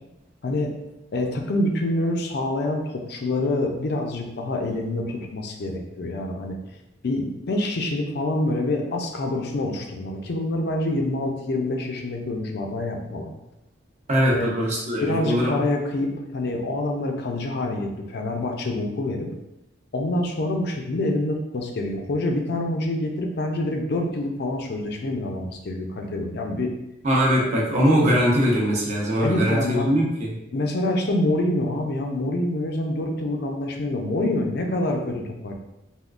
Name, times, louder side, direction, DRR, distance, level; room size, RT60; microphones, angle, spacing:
voice 1, 1.1-6.6 7.0-13.3 14.3-14.5 15.0-19.3 19.9-26.7 29.2-29.9 30.5-35.5, left 1 dB, 60° left, 3 dB, 0.4 m, -26 dB
voice 2, 14.1-15.5 27.0-30.3, equal, 40° right, -3 dB, 0.7 m, -21 dB
3.5 x 2.3 x 2.4 m, 0.93 s
head